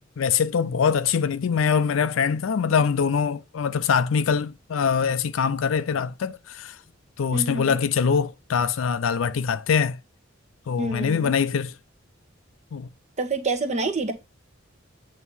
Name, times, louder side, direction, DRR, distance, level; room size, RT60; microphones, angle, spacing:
voice 1, 0.2-6.8 7.2-10.0 10.7-11.7 12.7-12.9, left 6 dB, 85° left, 0.4 m, -23 dB
voice 2, 7.3-7.8 10.8-11.3 13.2-14.1, right 3 dB, 35° right, 1.2 m, -27 dB
8.1 x 2.8 x 5.4 m
head